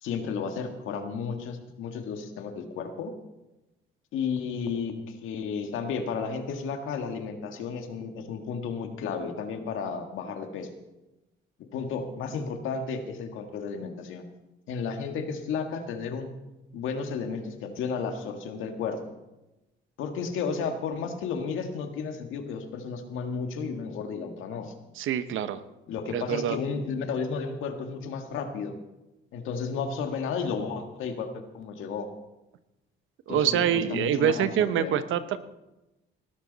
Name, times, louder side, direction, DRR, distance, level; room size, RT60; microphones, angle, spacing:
voice 1, 0.0-3.1 4.1-10.7 11.7-14.2 14.7-16.3 16.7-19.0 20.0-24.7 25.9-28.8 29.3-32.1 33.3-34.9, left 5 dB, 90° left, 6 dB, 1.8 m, -33 dB
voice 2, 25.0-25.6 26.1-26.6 33.3-35.4, right 9 dB, 80° right, 12 dB, 1.0 m, -25 dB
18.5 x 13.0 x 4.1 m, 0.99 s
cardioid pair, 90°, 20 cm